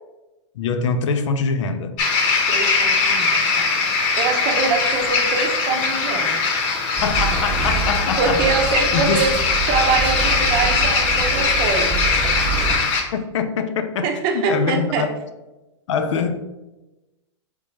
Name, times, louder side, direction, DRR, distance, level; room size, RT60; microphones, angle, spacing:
voice 1, 0.5-2.0 7.0-9.2 13.1-14.1 14.3-15.1 15.9-16.4, left 5 dB, 75° left, 9 dB, 0.6 m, -23 dB
sound 1, 2.0-13.0, left 4 dB, 45° left, 0.9 m, -21 dB
voice 2, 2.5-3.7 4.2-6.4 8.2-9.4 9.7-12.1 14.0-15.1, right 5 dB, 45° right, 3 dB, 0.7 m, -23 dB
sound 2, 7.0-12.8, right 4 dB, 5° right, 1.0 m, -26 dB
4.0 x 3.6 x 3.1 m, 1.0 s
hypercardioid pair, 125°, 16 cm